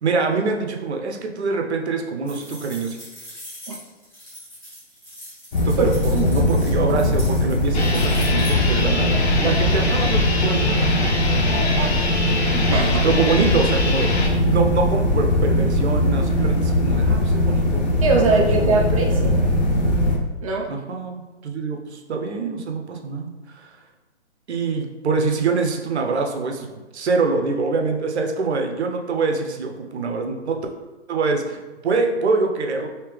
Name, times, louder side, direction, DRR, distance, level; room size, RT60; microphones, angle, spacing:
voice 1, 0.0-3.0 5.6-12.4 13.0-14.1 14.5-18.8 20.7-23.7 24.5-26.7 26.9-30.6 31.1-32.9, right 4 dB, 70° right, 3 dB, 0.7 m, -25 dB
sound 1, 2.3-8.8, equal, 5° left, 0.9 m, -41 dB
sound 2, 5.5-20.2, left 1 dB, 40° left, 0.5 m, -20 dB
voice 2, 5.8-6.3 12.7-13.0 18.0-19.5 20.4-20.7, right 3 dB, 30° right, -1 dB, 0.5 m, -21 dB
sound 3, 7.7-14.3, left 3 dB, 65° left, 0.9 m, -26 dB
3.4 x 2.8 x 3.3 m, 1.2 s
hypercardioid pair, 145°, 35 cm